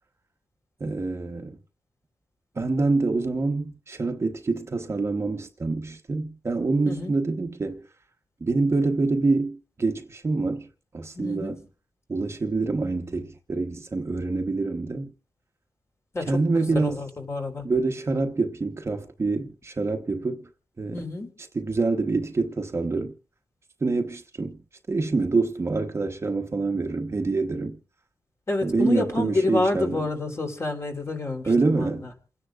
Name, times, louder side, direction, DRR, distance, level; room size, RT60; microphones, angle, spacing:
voice 1, 0.8-1.6 2.5-7.8 8.4-10.7 10.9-11.6 12.1-15.1 16.3-17.0 17.6-20.5 20.8-21.0 21.5-23.1 23.8-24.6 24.9-27.8 28.6-30.1 31.5-32.1, right 3 dB, 35° right, 1.2 m, -26 dB
voice 2, 11.1-11.6 16.1-17.6 20.8-21.3 28.5-32.1, left 2 dB, 35° left, 3.5 m, -28 dB
28.5 x 10.0 x 2.5 m
wide cardioid pair, 120°, 8 cm